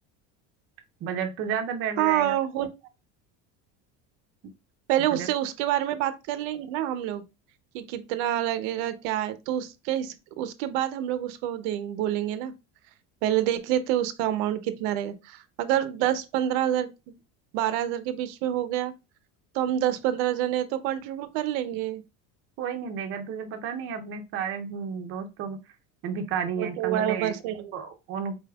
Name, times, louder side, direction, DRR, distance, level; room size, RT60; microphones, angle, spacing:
voice 1, 1.0-2.4 5.1-5.3 22.6-25.6 26.0-27.4 27.7-28.4, right 7 dB, 35° right, 0.5 m, -32 dB
voice 2, 2.0-2.7 4.9-7.2 7.7-12.5 13.2-16.9 17.5-18.9 19.5-22.0 26.6-27.7, right 12 dB, 85° right, 0.6 m, -27 dB
4.3 x 3.3 x 2.2 m
cardioid pair, 160°, 35 cm